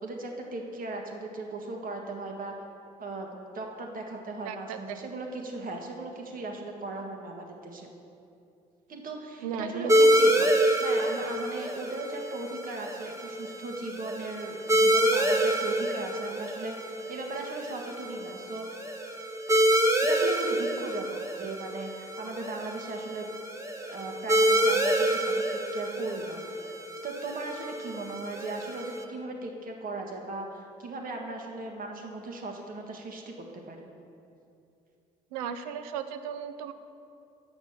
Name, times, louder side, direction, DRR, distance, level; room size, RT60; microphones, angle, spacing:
voice 1, 0.0-2.5 3.0-7.9 8.9-18.7 20.0-23.3 23.9-26.4 27.0-33.9, right 2 dB, 50° right, 1 dB, 1.5 m, -38 dB
voice 2, 4.4-5.0 9.4-10.6 35.3-36.7, right 7 dB, 85° right, 10 dB, 0.5 m, -36 dB
sound 1, 9.9-29.0, right 1 dB, 15° right, 1.1 m, -27 dB
8.3 x 6.0 x 7.1 m, 2.6 s
hypercardioid pair, 55°, 18 cm